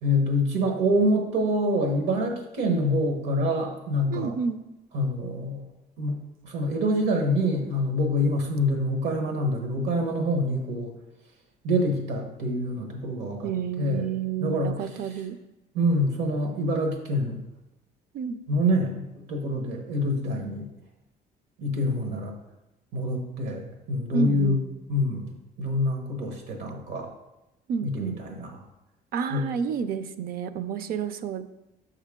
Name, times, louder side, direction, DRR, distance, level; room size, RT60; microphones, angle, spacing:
voice 1, 0.0-4.3 4.9-5.6 6.0-6.2 6.4-10.9 11.6-14.1 14.4-14.7 15.7-17.4 18.5-20.7 21.6-22.3 22.9-24.6 24.9-27.1 27.8-28.6 29.3-29.4, equal, 80° right, 3 dB, 1.2 m, -26 dB
voice 2, 4.1-4.6 13.4-15.4 18.1-18.4 24.1-24.6 27.7-28.3 29.1-31.4, right 7 dB, 60° right, 12 dB, 0.5 m, -30 dB
6.6 x 5.6 x 3.6 m, 0.96 s
cardioid pair, 110°, 17 cm